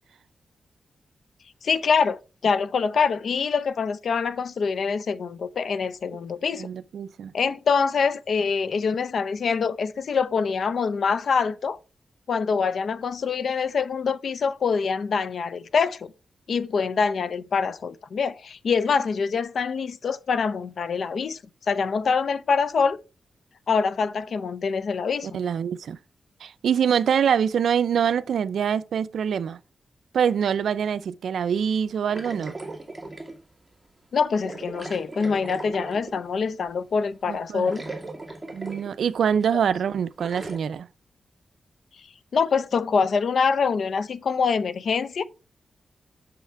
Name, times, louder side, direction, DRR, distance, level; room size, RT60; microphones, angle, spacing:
voice 1, 1.6-6.7 7.3-11.8 12.3-16.1 16.5-21.4 21.7-23.0 23.7-25.4 34.1-37.9 39.5-39.6 42.0-42.1 42.3-45.2, left 5 dB, 70° left, 0.6 m, -25 dB
voice 2, 6.6-7.3 25.3-26.0 26.4-29.6 30.1-32.5 37.3-37.7 38.5-40.9, right 7 dB, 85° right, 0.4 m, -24 dB
sound 1, 32.1-33.4 34.4-36.3 37.3-37.4 37.7-39.0 39.4-39.5 40.2-40.6, right 2 dB, 15° right, 2.1 m, -38 dB
6.6 x 5.7 x 4.5 m
cardioid pair, 75°, 0 cm